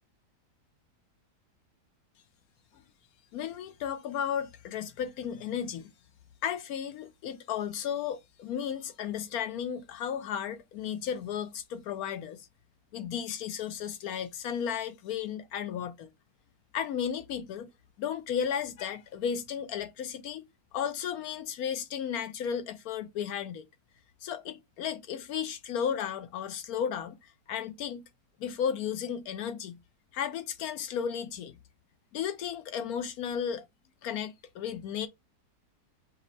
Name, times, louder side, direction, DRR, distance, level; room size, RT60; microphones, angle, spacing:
voice 1, 3.3-5.9 6.4-12.5 12.9-16.1 16.7-17.7 18.0-20.4 20.7-23.6 24.2-28.0 28.4-29.8 30.1-31.6 32.1-33.7 34.0-35.1, left 8 dB, 70° left, 1.0 m, -34 dB
5.3 x 2.0 x 4.0 m
omnidirectional pair, 1.8 m